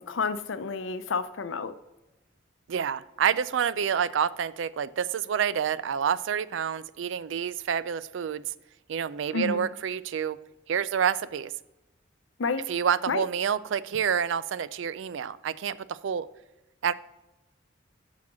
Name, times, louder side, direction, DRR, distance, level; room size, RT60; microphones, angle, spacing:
voice 1, 0.0-1.7 9.3-9.7 12.4-12.6 13.1-13.2, left 4 dB, 90° left, 11 dB, 0.6 m, -30 dB
voice 2, 2.7-8.4 8.9-10.4 10.7-11.5 12.7-16.3 16.8-16.9, right 8 dB, 80° right, 17 dB, 0.4 m, -28 dB
6.0 x 5.8 x 6.2 m, 1.0 s
head